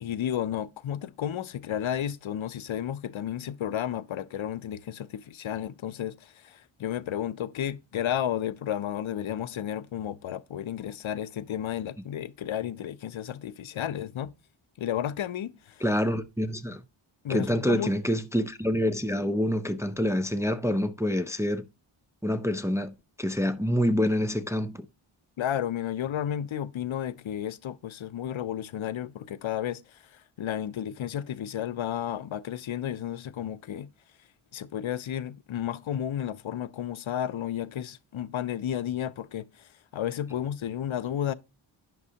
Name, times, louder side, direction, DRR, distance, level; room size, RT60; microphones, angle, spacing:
voice 1, 0.0-14.3 14.8-15.6 17.2-17.9 25.4-29.8 30.4-33.9 34.5-39.7 39.9-41.3, left 10 dB, 70° left, 0.6 m, -32 dB
voice 2, 15.8-16.8 17.3-21.6 22.2-24.9, equal, 5° right, 0.5 m, -27 dB
9.3 x 6.0 x 2.8 m
cardioid pair, 50°, 49 cm